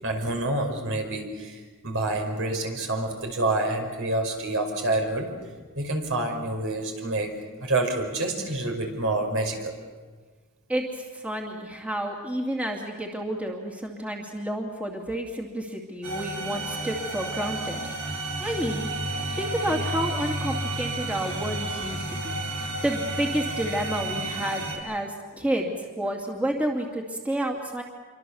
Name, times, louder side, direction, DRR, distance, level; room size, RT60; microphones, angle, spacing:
voice 1, 0.0-5.3 5.8-7.3 7.6-9.7, right 2 dB, 65° right, 3 dB, 5.4 m, -27 dB
voice 2, 10.7-18.1 18.4-18.9 19.3-27.8, right 1 dB, 5° right, 0 dB, 2.5 m, -30 dB
sound 1, 16.0-24.8, right 1 dB, 85° right, 5.6 m, -31 dB
27.5 x 24.5 x 7.1 m, 1.5 s
head